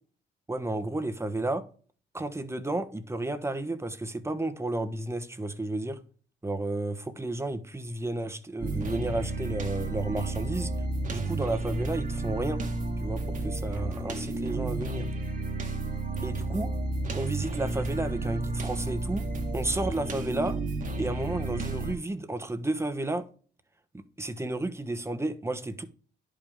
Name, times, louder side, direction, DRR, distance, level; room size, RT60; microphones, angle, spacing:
voice 1, 0.5-1.6 2.1-6.0 6.4-10.7 11.1-12.6 13.0-15.1 16.2-16.7 17.1-19.2 19.5-20.6 21.0-23.3 23.9-25.8, right 2 dB, 15° right, 1.1 m, -32 dB
sound 1, 8.6-21.9, right 2 dB, 40° right, 1.5 m, -32 dB
10.5 x 5.3 x 3.6 m
cardioid pair, 90°, 20 cm